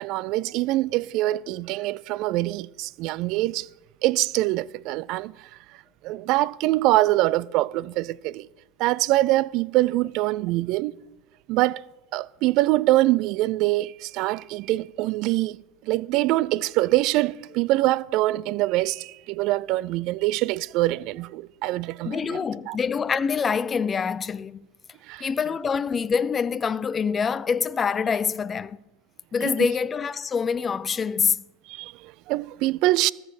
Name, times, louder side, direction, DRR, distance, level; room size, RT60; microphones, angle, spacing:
voice 1, 0.0-3.7 4.0-5.3 6.0-8.5 8.8-10.9 11.5-11.8 12.1-15.6 15.8-22.4 22.7-22.8 25.1-25.3 29.4-29.7 31.7-33.1, right 17 dB, 60° right, 0.3 m, -24 dB
voice 2, 22.0-24.6 25.2-28.8 29.3-31.4, left 6 dB, 25° left, 0.4 m, -25 dB
14.0 x 6.4 x 7.1 m
supercardioid pair, 105°, 0 cm